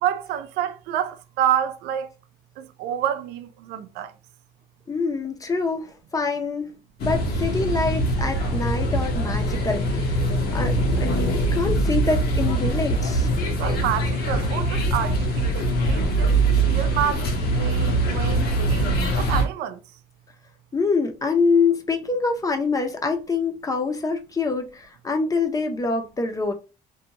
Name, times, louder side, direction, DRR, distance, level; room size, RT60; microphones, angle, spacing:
voice 1, 0.0-2.1 2.6-4.1 13.6-16.3 16.6-19.8, right 10 dB, 85° right, 0.4 m, -28 dB
voice 2, 4.9-6.7 7.0-10.3 10.5-13.3 20.7-26.5, left 4 dB, 20° left, 0.5 m, -25 dB
sound 1, 7.0-19.4, right 1 dB, 70° left, 0.9 m, -23 dB
2.6 x 2.1 x 2.8 m
cardioid pair, 110°, 17 cm